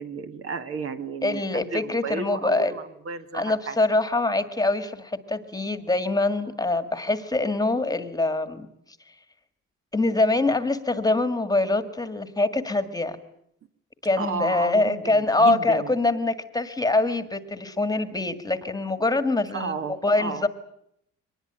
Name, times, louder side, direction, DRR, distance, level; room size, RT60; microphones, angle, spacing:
voice 1, 0.0-3.8 14.2-16.0 19.5-20.5, right 5 dB, 45° right, 9 dB, 1.8 m, -33 dB
voice 2, 1.2-2.7 3.3-8.7 9.9-13.2 14.0-19.7 20.0-20.5, left 2 dB, 10° left, 11 dB, 1.8 m, -24 dB
24.0 x 20.5 x 8.9 m, 0.74 s
cardioid pair, 150°, 30 cm